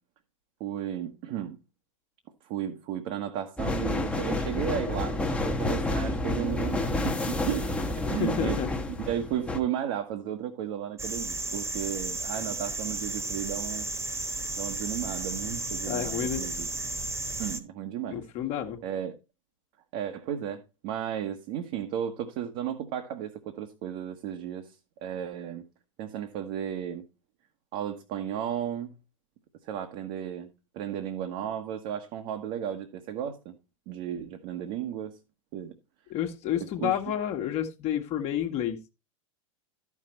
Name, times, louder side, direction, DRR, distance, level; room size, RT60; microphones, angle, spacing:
voice 1, 0.6-1.6 2.4-8.6 8.9-13.9 14.6-16.7 17.4-18.2 18.8-19.2 19.9-24.8 25.0-25.6 26.0-27.0 27.7-29.0 29.6-30.5 30.7-33.5 33.9-35.2 35.5-35.7 36.6-36.9, right 10 dB, 45° right, 1.3 m, -34 dB
sound 1, 3.6-9.6, left 2 dB, 5° left, 1.2 m, -29 dB
voice 2, 8.1-8.7 15.8-16.5 18.1-18.8 36.1-38.8, left 10 dB, 40° left, 1.5 m, -30 dB
sound 2, 11.0-17.6, right 2 dB, 15° right, 1.4 m, -33 dB
13.0 x 6.0 x 4.4 m
figure-of-eight pair, 90°, 17 cm